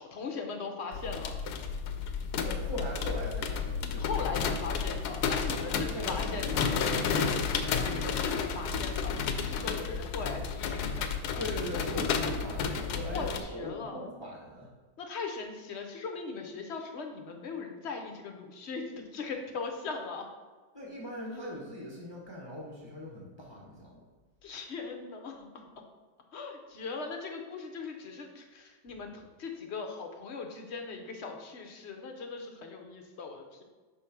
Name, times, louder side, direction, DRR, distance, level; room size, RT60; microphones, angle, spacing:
voice 1, 0.0-1.4 4.0-6.7 7.8-11.4 13.1-14.0 15.0-20.3 24.4-25.7 26.3-33.6, left 4 dB, 50° left, 3 dB, 0.9 m, -39 dB
sound 1, 0.9-13.4, left 6 dB, 75° left, 1.1 m, -32 dB
voice 2, 2.3-4.1 5.8-7.5 11.4-14.7 20.7-24.0, equal, 20° left, -4 dB, 0.9 m, -40 dB
5.1 x 4.5 x 5.8 m, 1.4 s
omnidirectional pair, 1.8 m